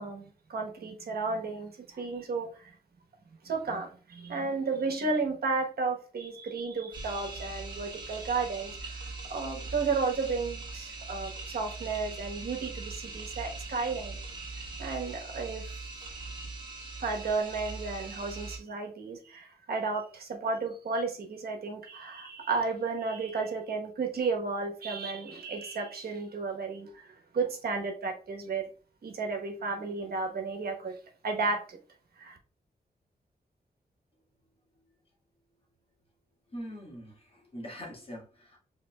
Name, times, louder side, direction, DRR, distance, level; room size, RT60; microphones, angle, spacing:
voice 1, 0.0-2.6 3.4-14.2 14.8-15.6 17.0-28.6 29.0-30.9 31.2-31.8 32.2-32.4, right 4 dB, 75° right, 1.1 m, -33 dB
sound 1, 6.9-18.6, right 3 dB, 30° right, 1.6 m, -41 dB
voice 2, 36.5-38.6, equal, 35° left, 1.7 m, -43 dB
5.1 x 3.7 x 2.3 m
wide cardioid pair, 85°, 16 cm